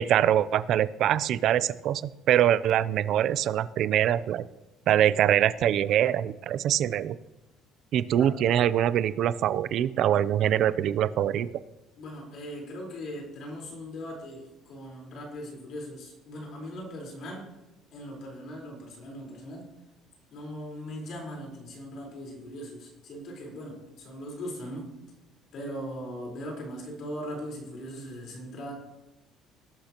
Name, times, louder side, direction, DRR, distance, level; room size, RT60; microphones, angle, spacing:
voice 1, 0.0-2.0 2.3-4.4 4.9-7.2 7.9-11.5, right 11 dB, 50° right, 16 dB, 0.5 m, -24 dB
voice 2, 12.0-17.5 17.9-19.7 20.3-25.0 25.5-28.7, equal, 50° left, -1 dB, 4.2 m, -39 dB
19.5 x 11.5 x 3.0 m, 1.0 s
cardioid pair, 155°, 0 cm